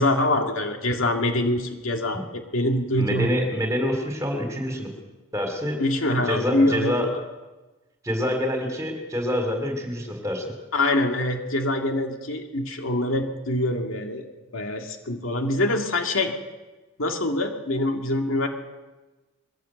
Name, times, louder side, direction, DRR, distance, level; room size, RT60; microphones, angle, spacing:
voice 1, 0.0-3.3 5.8-7.2 10.7-14.2 14.5-16.3 17.0-18.5, left 1 dB, 70° left, 3 dB, 2.4 m, -24 dB
voice 2, 3.0-4.9 5.3-5.8 6.3-7.1 8.0-10.4, left 1 dB, 15° right, 3 dB, 3.9 m, -26 dB
22.0 x 16.5 x 8.0 m, 1.2 s
head